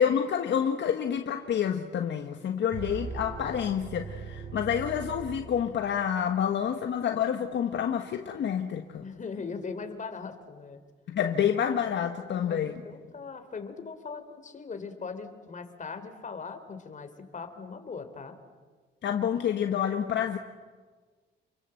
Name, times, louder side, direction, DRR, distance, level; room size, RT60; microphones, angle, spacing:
voice 1, 0.0-9.0 11.1-12.8 19.0-20.4, left 8 dB, 65° left, 5 dB, 1.6 m, -28 dB
sound 1, 2.7-6.2, right 5 dB, 45° right, 7.0 m, -40 dB
voice 2, 9.0-10.8 12.4-18.4, left 5 dB, 40° left, 7 dB, 3.6 m, -40 dB
29.0 x 22.0 x 7.9 m, 1.4 s
cardioid pair, 90°, 20 cm